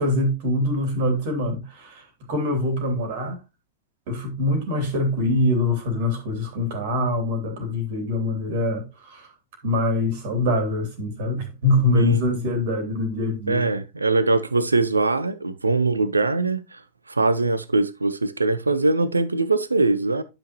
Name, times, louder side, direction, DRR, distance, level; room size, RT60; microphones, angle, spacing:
voice 1, 0.0-3.4 4.1-9.3 9.6-13.6, left 2 dB, 50° right, 2.9 m, -24 dB
voice 2, 11.9-12.3 13.5-16.8 17.1-20.2, right 3 dB, 80° right, 0.7 m, -22 dB
10.5 x 6.1 x 3.0 m
figure-of-eight pair, 90°, 0 cm